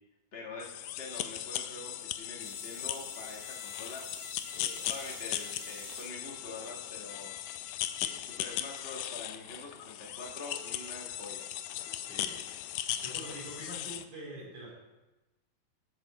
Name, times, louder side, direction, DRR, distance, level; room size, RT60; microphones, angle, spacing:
voice 1, 0.3-0.7 1.0-4.0 4.5-7.3 8.0-11.5, left 3 dB, 25° left, -1 dB, 1.4 m, -45 dB
sound 1, 0.6-14.0, left 12 dB, 80° left, 1.9 m, -38 dB
sound 2, 2.4-6.1 6.8-7.2 8.5-8.6, right 11 dB, 85° right, 2.3 m, -51 dB
voice 2, 12.1-14.8, right 1 dB, 65° right, -4 dB, 4.9 m, -45 dB
15.5 x 7.1 x 4.3 m, 1.1 s
omnidirectional pair, 3.8 m